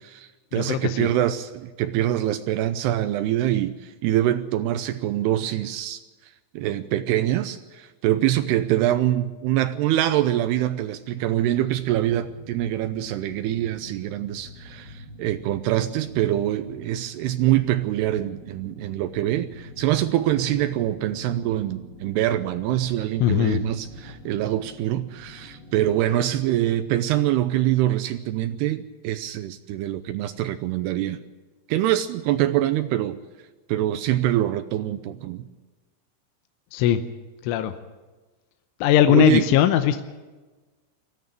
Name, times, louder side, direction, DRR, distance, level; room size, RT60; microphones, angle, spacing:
voice 1, 0.0-6.0 6.5-31.2 31.7-33.2 33.7-35.5 39.1-39.5, right 13 dB, 90° right, 10 dB, 2.3 m, -24 dB
voice 2, 0.5-1.1 23.2-23.6 36.7-37.0 37.4-37.7 38.8-40.0, left 11 dB, 80° left, 8 dB, 3.3 m, -19 dB
sound 1, 11.7-26.8, left 1 dB, 10° left, 5.7 m, -45 dB
20.0 x 14.0 x 9.4 m, 1.3 s
omnidirectional pair, 5.6 m